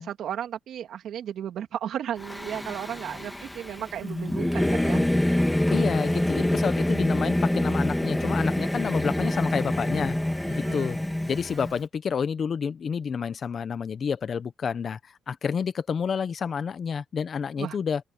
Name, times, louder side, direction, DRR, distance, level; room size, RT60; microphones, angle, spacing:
voice 1, 0.0-5.1 10.4-11.0 11.5-11.6 17.6-17.8, right 10 dB, 70° right, 3.1 m, -34 dB
Singing / Musical instrument, 2.2-11.8, left 1 dB, 5° left, 2.3 m, -26 dB
voice 2, 5.7-10.2 10.5-11.0 11.2-15.0 15.3-18.0, left 6 dB, 50° left, 1.2 m, -29 dB
cardioid pair, 90°, 0 cm